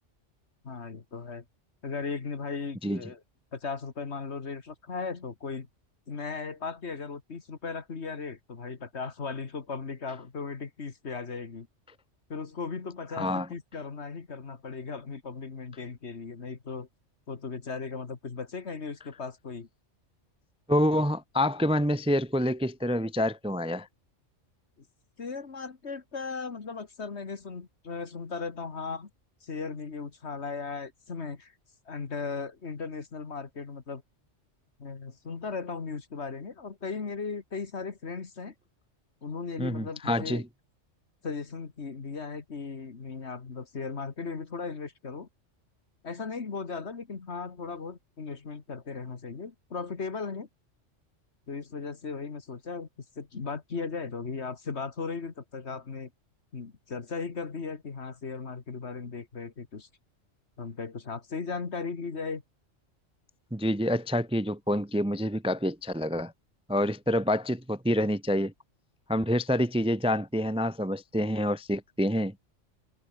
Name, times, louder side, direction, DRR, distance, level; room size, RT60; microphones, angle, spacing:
voice 1, 0.6-1.4 1.8-3.2 3.5-5.7 6.1-11.7 12.3-16.9 17.3-19.7 25.2-29.1 29.4-31.5 31.9-34.0 34.8-38.5 39.2-40.4 41.2-45.3 46.0-50.5 51.5-52.9 53.2-56.1 56.5-59.9 60.6-62.4, left 4 dB, 60° left, 2.1 m, -37 dB
voice 2, 13.2-13.5 20.7-23.9 39.6-40.4 63.5-66.3 66.7-68.5 69.1-72.3, equal, 5° right, 0.6 m, -27 dB
omnidirectional pair, 1.3 m